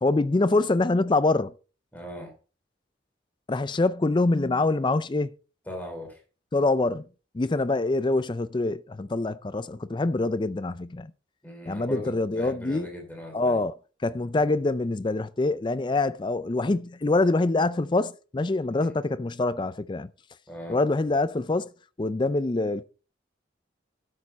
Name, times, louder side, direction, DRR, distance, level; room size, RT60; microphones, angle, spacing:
voice 1, 0.0-1.5 3.5-5.3 6.5-7.1 7.3-11.1 11.7-12.9 13.3-13.7 14.0-20.1 20.7-21.7 22.0-22.9, left 2 dB, 25° left, 0.4 m, -25 dB
voice 2, 1.9-2.3 5.7-6.2 11.4-13.6 18.7-18.9 20.5-20.8, equal, 10° left, 3.3 m, -39 dB
12.5 x 6.8 x 4.1 m
head